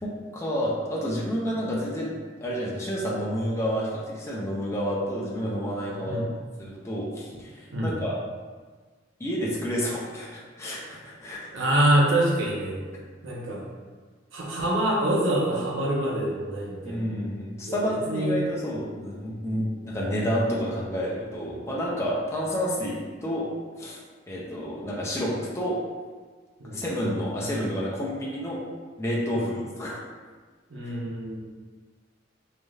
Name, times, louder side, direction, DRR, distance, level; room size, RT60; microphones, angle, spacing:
voice 1, 0.0-2.1 2.4-6.2 6.6-8.2 9.2-11.6 16.8-23.5 23.8-24.0 24.3-25.8 26.7-28.6 29.0-30.0 30.8-30.9, equal, 15° left, -5 dB, 0.4 m, -29 dB
voice 2, 11.5-12.8 13.2-13.7 14.3-17.1 17.6-18.4 18.9-19.0 26.6-26.8 29.3-29.5 30.7-31.4, right 1 dB, 80° right, -3 dB, 0.7 m, -25 dB
3.3 x 2.6 x 2.3 m, 1.4 s
head